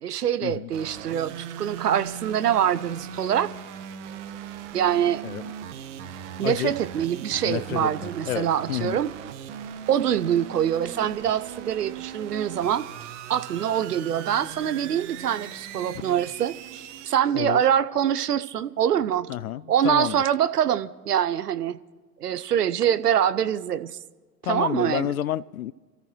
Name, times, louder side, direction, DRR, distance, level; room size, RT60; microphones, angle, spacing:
voice 1, 0.0-3.5 4.7-5.2 6.4-9.1 9.9-12.9 13.3-19.3 19.7-21.8 22.2-24.0 24.4-25.1, right 9 dB, 70° right, 0.8 m, -24 dB
sound 1, 0.7-17.1, right 8 dB, 45° right, 1.3 m, -39 dB
voice 2, 6.4-6.7 7.5-9.0 17.3-17.6 19.3-20.2 24.4-25.7, left 12 dB, 60° left, 0.5 m, -30 dB
27.0 x 14.0 x 3.1 m
figure-of-eight pair, 95°, 49 cm